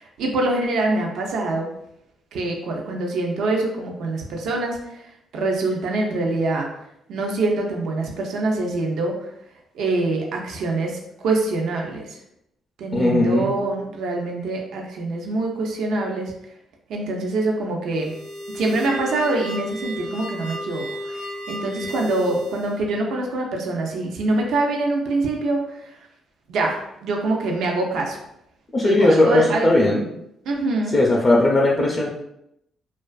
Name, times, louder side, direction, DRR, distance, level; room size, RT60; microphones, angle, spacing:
voice 1, 0.0-1.7 2.3-5.1 5.3-6.7 7.1-9.2 9.8-12.2 12.8-16.3 16.9-18.1 18.5-25.8 26.5-28.2 28.8-29.7 30.5-31.0, right 2 dB, 75° right, 1 dB, 0.4 m, -24 dB
voice 2, 12.9-13.5 28.7-30.1 30.9-32.1, left 2 dB, 35° left, -3 dB, 0.4 m, -17 dB
sound 1, 17.9-22.8, equal, 85° left, 0.5 m, -33 dB
2.4 x 2.3 x 2.3 m, 0.79 s
cardioid pair, 90°, 0 cm